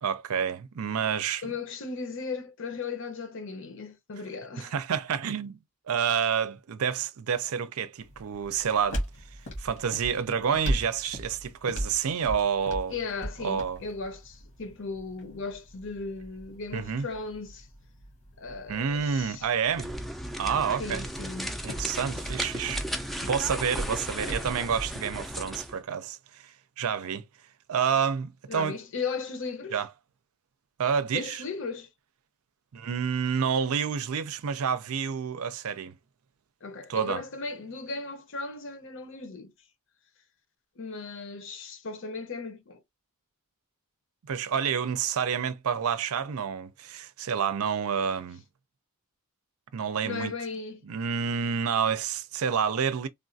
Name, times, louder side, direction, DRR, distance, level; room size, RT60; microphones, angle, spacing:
voice 1, 0.0-1.5 4.6-5.6 5.9-9.0 9.6-12.9 13.4-13.8 16.7-17.1 18.7-19.9 20.4-21.0 21.6-27.2 27.7-28.8 29.7-29.9 30.8-31.4 32.7-36.0 36.9-37.2 44.3-48.4 49.7-50.3 50.9-53.1, right 7 dB, 70° right, 0.5 m, -29 dB
voice 2, 1.4-4.7 12.9-17.7 18.4-19.5 20.8-21.5 28.5-29.8 31.1-31.9 36.6-39.5 40.8-42.8 50.0-50.9, left 4 dB, 60° left, 0.8 m, -36 dB
sound 1, 8.0-25.0, equal, 80° left, 1.6 m, -39 dB
sound 2, 19.7-25.8, equal, ahead, 0.4 m, -35 dB
3.5 x 2.4 x 2.6 m
head